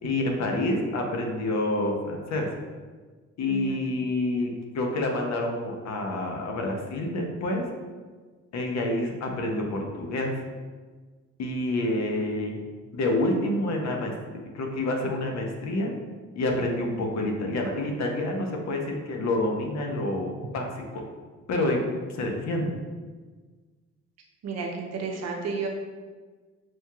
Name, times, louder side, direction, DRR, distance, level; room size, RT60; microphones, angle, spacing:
voice 1, 0.0-2.5 3.4-7.6 8.5-10.4 11.4-12.6 12.9-14.1 14.5-15.9 16.4-21.0 21.5-21.8 22.1-22.7, left 1 dB, 60° left, 2 dB, 0.8 m, -28 dB
voice 2, 3.5-3.8 24.4-25.7, right 4 dB, 60° right, 1 dB, 0.7 m, -32 dB
6.1 x 2.7 x 2.4 m, 1.4 s
cardioid pair, 90°, 30 cm